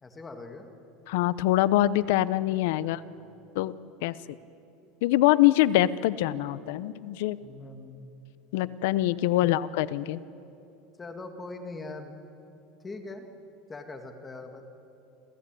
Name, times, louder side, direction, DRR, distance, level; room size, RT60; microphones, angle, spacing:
voice 1, 0.0-0.7 2.7-3.3 7.3-8.1 11.0-12.1 12.8-13.3 13.7-14.6, left 3 dB, 15° left, 6 dB, 2.0 m, -42 dB
voice 2, 1.1-3.0 3.6-3.7 4.0-4.1 5.0-7.4 8.5-10.2, left 15 dB, 70° left, 17 dB, 0.7 m, -24 dB
28.0 x 14.5 x 9.1 m, 2.8 s
supercardioid pair, 140°, 0 cm